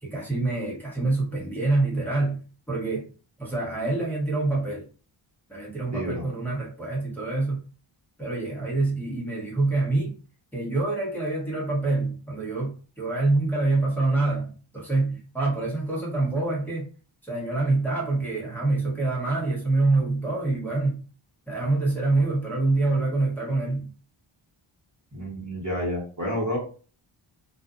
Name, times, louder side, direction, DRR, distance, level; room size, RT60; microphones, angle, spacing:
voice 1, 0.0-3.1 3.4-4.9 5.5-7.6 8.2-10.2 10.5-16.9 17.2-21.0 21.5-23.9, right 2 dB, 5° left, -6 dB, 1.2 m, -26 dB
voice 2, 5.9-6.3 25.1-26.6, equal, 35° right, -3 dB, 1.2 m, -29 dB
2.6 x 2.4 x 2.4 m, 0.38 s
cardioid pair, 50°, 50 cm